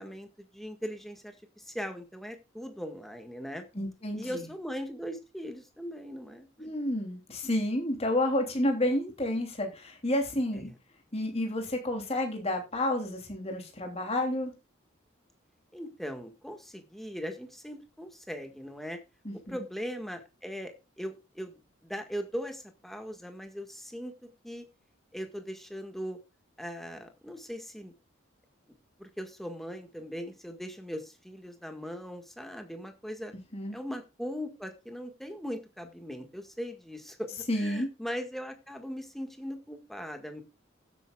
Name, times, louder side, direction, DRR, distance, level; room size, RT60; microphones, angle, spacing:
voice 1, 0.0-3.6 4.2-6.5 10.5-10.7 15.7-19.0 19.5-20.7 21.0-24.7 25.1-26.2 26.6-27.9 29.0-33.3 33.7-40.4, equal, ahead, 1.7 m, -39 dB
voice 2, 3.7-4.4 6.6-10.7 11.1-14.5 19.2-19.6 33.5-33.8 37.5-37.9, left 1 dB, 30° left, 3.0 m, -30 dB
16.0 x 8.1 x 2.4 m
head